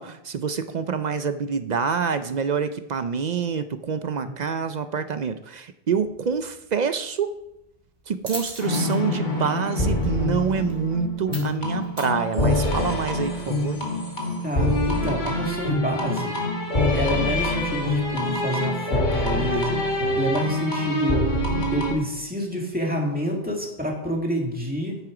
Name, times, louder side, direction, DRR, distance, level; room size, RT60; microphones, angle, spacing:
voice 1, 0.0-7.3 8.1-13.8, right 6 dB, 55° right, 11 dB, 0.5 m, -26 dB
sound 1, 5.9-12.8, right 1 dB, 35° right, 2.8 m, -43 dB
sound 2, 8.6-21.9, left 1 dB, 45° left, 2.1 m, -25 dB
voice 2, 14.4-16.3 16.9-21.3 21.7-25.0, equal, 10° right, -1 dB, 2.0 m, -28 dB
9.6 x 7.6 x 5.0 m, 0.85 s
omnidirectional pair, 1.1 m